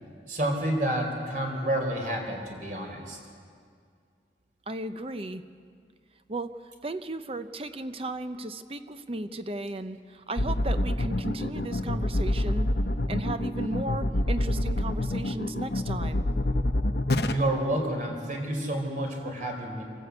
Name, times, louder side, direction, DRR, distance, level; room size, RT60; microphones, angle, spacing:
voice 1, 0.3-3.2 17.3-19.8, right 1 dB, 50° right, 2 dB, 4.0 m, -29 dB
voice 2, 4.7-5.4 6.3-12.7 13.1-16.3, right 2 dB, 35° right, 10 dB, 0.8 m, -35 dB
sound 1, 10.4-17.3, left 1 dB, 65° left, 1.0 m, -27 dB
27.0 x 14.0 x 8.3 m, 2.2 s
head